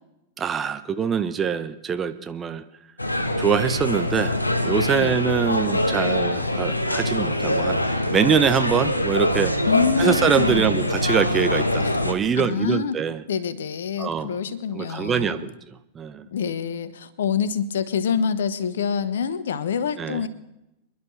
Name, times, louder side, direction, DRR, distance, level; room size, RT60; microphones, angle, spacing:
voice 1, 0.4-2.6 3.4-9.5 10.0-13.2 14.0-14.4 14.7-15.5 15.9-16.3 20.0-20.3, right 7 dB, 20° right, 10 dB, 0.8 m, -24 dB
sound 1, 3.0-12.1, left 1 dB, 85° left, 1.1 m, -24 dB
voice 2, 9.7-10.8 11.8-11.9 12.4-13.0 13.3-15.5 16.3-20.3, left 6 dB, 65° left, 14 dB, 1.0 m, -26 dB
27.5 x 11.0 x 3.2 m, 0.92 s
figure-of-eight pair, 95°, 0 cm